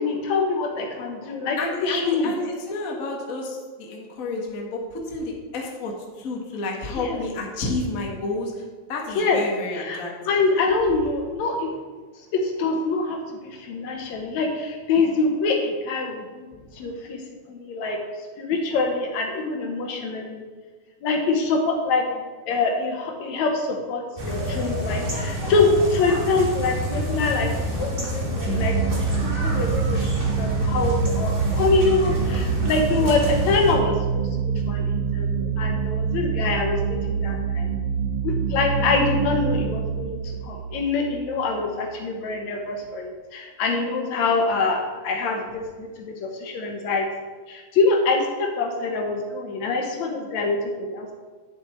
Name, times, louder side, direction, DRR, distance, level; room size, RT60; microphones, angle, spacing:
voice 1, 0.0-2.3 7.0-7.2 9.2-9.4 9.7-10.0 10.3-11.7 12.3-16.5 16.7-17.2 17.5-18.0 18.4-20.4 21.0-28.8 29.1-34.3 34.6-37.7 38.2-47.1 47.5-51.1, left 3 dB, 70° left, 2 dB, 2.3 m, -25 dB
voice 2, 1.6-8.6 8.9-10.4 38.8-39.2, left 2 dB, 35° left, -1 dB, 1.4 m, -30 dB
sound 1, 24.2-33.7, equal, 25° right, 1.4 m, -28 dB
sound 2, 28.5-41.8, right 7 dB, 75° right, 2.3 m, -26 dB
10.5 x 7.4 x 4.4 m, 1.4 s
omnidirectional pair, 3.4 m